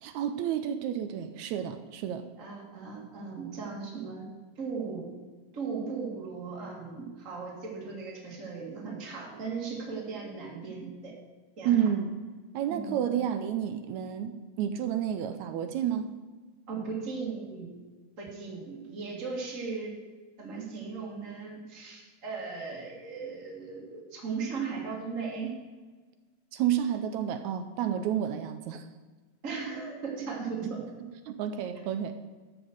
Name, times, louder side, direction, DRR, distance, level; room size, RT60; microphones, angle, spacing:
voice 1, 0.0-2.3 11.7-12.1 12.5-16.1 26.5-28.9 31.3-32.1, right 9 dB, 80° right, 9 dB, 1.9 m, -30 dB
voice 2, 2.4-4.3 4.6-5.2 5.5-11.2 11.6-11.9 12.7-13.1 16.7-17.8 18.2-19.9 20.4-25.6 29.4-30.9, right 5 dB, 30° right, -3 dB, 2.1 m, -37 dB
12.5 x 5.1 x 7.8 m, 1.4 s
omnidirectional pair, 3.5 m